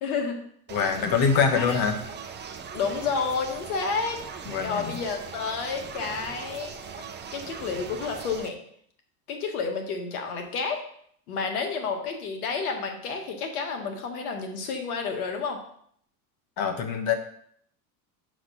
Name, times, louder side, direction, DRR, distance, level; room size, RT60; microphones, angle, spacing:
voice 1, 0.0-0.5 1.6-1.8 2.7-4.2 4.6-6.7 7.3-8.6 9.3-10.8 11.3-15.6, left 5 dB, 85° left, 4 dB, 1.7 m, -30 dB
voice 2, 0.7-2.0 4.5-4.9 16.6-17.1, left 6 dB, 50° left, 6 dB, 1.4 m, -24 dB
sound 1, 0.7-8.5, right 6 dB, 25° right, 0.7 m, -40 dB
6.0 x 5.1 x 5.6 m, 0.65 s
supercardioid pair, 105°, 43 cm